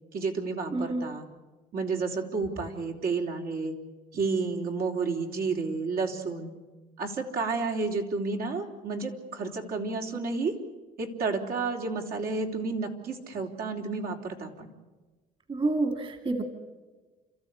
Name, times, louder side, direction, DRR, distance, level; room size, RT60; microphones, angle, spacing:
voice 1, 0.1-1.3 1.7-3.7 4.1-6.5 7.0-10.5 11.0-14.7, right 4 dB, 60° right, 2 dB, 3.6 m, -31 dB
voice 2, 0.7-1.1 15.5-16.4, right 2 dB, 30° right, 8 dB, 2.4 m, -28 dB
30.0 x 14.0 x 9.8 m, 1.3 s
cardioid pair, 110°, 17 cm